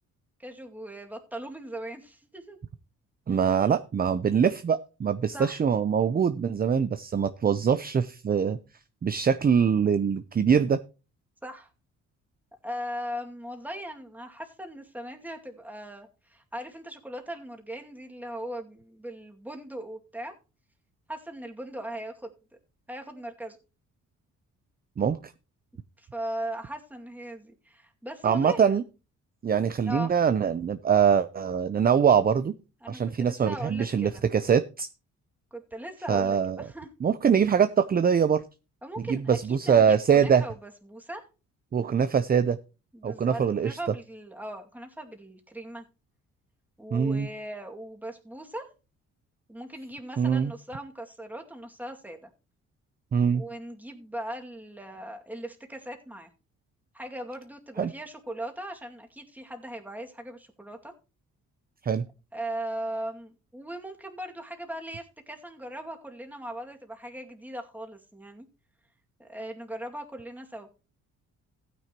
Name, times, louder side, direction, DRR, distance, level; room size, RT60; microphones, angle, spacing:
voice 1, 0.4-2.6 3.3-3.6 5.3-5.5 11.4-11.7 12.6-20.3 21.1-22.3 22.9-23.6 26.0-28.8 29.9-30.1 32.8-34.2 35.5-36.9 38.8-41.2 42.9-45.9 46.8-48.7 49.5-52.3 53.3-56.3 56.9-60.9 62.3-68.5 69.2-70.7, right 1 dB, 5° right, 2 dB, 2.3 m, -39 dB
voice 2, 3.3-8.6 9.0-10.8 25.0-25.2 28.2-28.8 29.4-32.6 32.9-34.9 36.1-36.7 37.0-38.4 39.1-40.4 41.7-42.6 43.0-43.8 46.9-47.3 50.2-50.5 53.1-53.4 57.8-57.9 61.8-62.0, right 7 dB, 30° right, 12 dB, 0.6 m, -23 dB
15.0 x 9.5 x 3.0 m, 0.32 s
cardioid pair, 90°, 30 cm